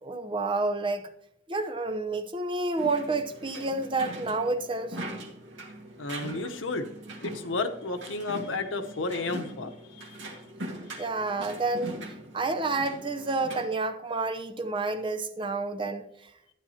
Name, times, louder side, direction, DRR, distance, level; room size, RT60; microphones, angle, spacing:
voice 1, 0.0-1.1 1.5-5.0 11.0-12.0 12.3-16.0, right 3 dB, 25° right, 0.6 m, -29 dB
sound 1, 2.8-13.6, right 1 dB, 85° right, 1.7 m, -41 dB
voice 2, 6.0-6.9 7.2-10.2 11.0-11.1, left 3 dB, 90° left, 0.9 m, -32 dB
12.5 x 9.4 x 2.8 m
head